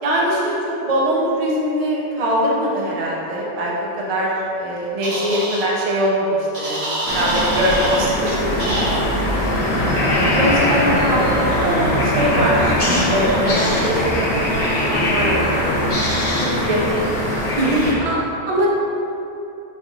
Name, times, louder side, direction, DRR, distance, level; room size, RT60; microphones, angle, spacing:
voice 1, 0.0-0.6 0.8-3.7 4.0-8.5 9.2-9.3 10.3-15.7 16.4-17.2 17.6-17.9, equal, 45° right, -4 dB, 0.5 m, -22 dB
sound 1, 5.0-5.6 6.5-8.1 8.6-9.0, right 1 dB, 90° right, 1.6 m, -25 dB
sound 2, 7.1-17.9, left 1 dB, 75° left, 1.0 m, -20 dB
voice 2, 9.2-9.8 18.0-18.7, right 1 dB, 75° right, -3 dB, 0.9 m, -24 dB
4.2 x 2.4 x 2.8 m, 2.9 s
omnidirectional pair, 1.2 m